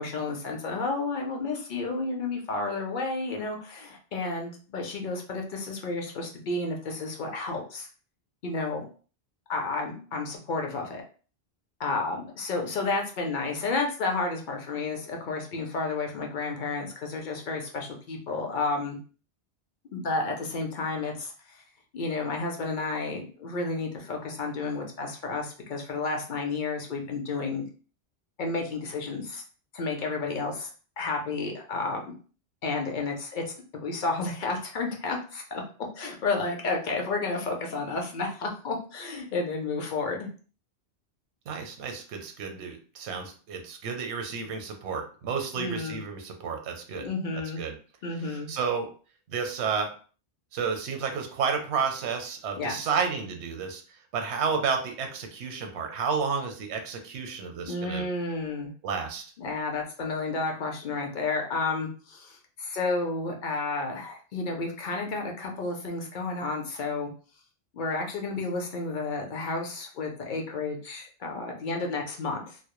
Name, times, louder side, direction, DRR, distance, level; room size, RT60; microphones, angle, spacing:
voice 1, 0.0-7.9 8.4-8.9 9.5-11.0 11.8-19.0 19.9-21.6 21.9-27.7 28.4-29.4 29.7-30.7 31.0-32.2 32.6-35.6 36.0-40.3 45.6-46.0 47.0-47.6 48.0-48.5 52.6-52.8 57.7-58.7 59.4-67.1 67.7-72.6, left 3 dB, 60° left, 2 dB, 0.6 m, -31 dB
voice 2, 41.5-47.1 47.6-47.7 48.2-48.9 49.3-49.9 50.5-53.8 54.1-58.0 58.8-59.2, right 5 dB, 80° right, 4 dB, 0.9 m, -31 dB
2.1 x 2.0 x 2.9 m, 0.39 s
omnidirectional pair, 1.1 m